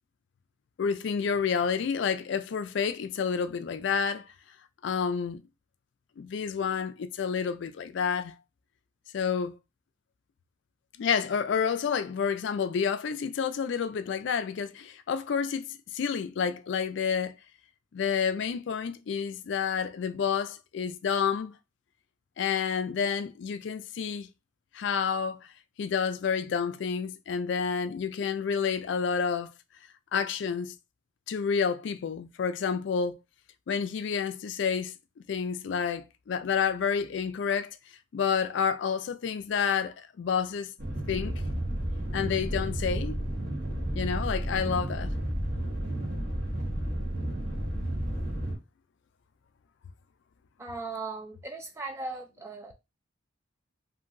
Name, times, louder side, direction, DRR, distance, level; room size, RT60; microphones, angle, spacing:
voice 1, 0.8-4.3 4.8-5.4 6.2-8.3 9.1-9.6 11.0-17.3 17.9-21.5 22.4-24.3 24.7-25.4 25.8-29.5 30.1-30.7 31.3-33.2 33.7-34.9 35.3-37.8 38.1-40.7 41.1-41.3 42.1-43.2 44.0-45.1, left 6 dB, 65° left, 0.3 m, -29 dB
sound 1, 40.8-48.6, right 1 dB, 45° right, 0.9 m, -32 dB
voice 2, 50.6-52.7, right 3 dB, 15° right, 0.3 m, -38 dB
2.9 x 2.6 x 2.5 m
head